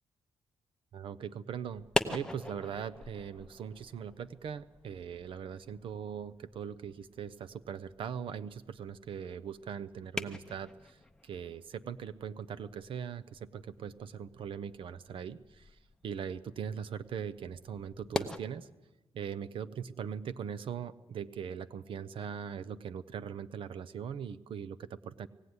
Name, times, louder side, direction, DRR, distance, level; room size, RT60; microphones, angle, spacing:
voice 1, 0.9-18.7 19.1-25.3, right 7 dB, 60° right, 14 dB, 0.6 m, -40 dB
sound 1, 1.7-18.4, left 2 dB, 5° left, 0.8 m, -43 dB
19.0 x 16.5 x 9.6 m, 1.1 s
wide cardioid pair, 175°, 10 cm